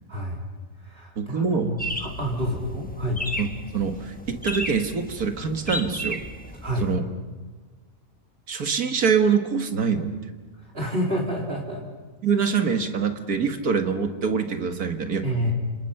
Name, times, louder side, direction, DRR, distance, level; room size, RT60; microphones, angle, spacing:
voice 1, 0.1-0.4 0.8-3.2 6.6-6.9 10.5-11.9 15.2-15.5, equal, 35° right, -2 dB, 4.0 m, -29 dB
voice 2, 1.2-1.7 3.4-6.2 6.8-7.0 8.5-10.2 12.2-15.3, right 6 dB, 70° right, 6 dB, 2.2 m, -24 dB
sound 1, 1.8-7.0, equal, 5° left, 1.2 m, -34 dB
29.0 x 27.0 x 5.8 m, 1.4 s
omnidirectional pair, 1.7 m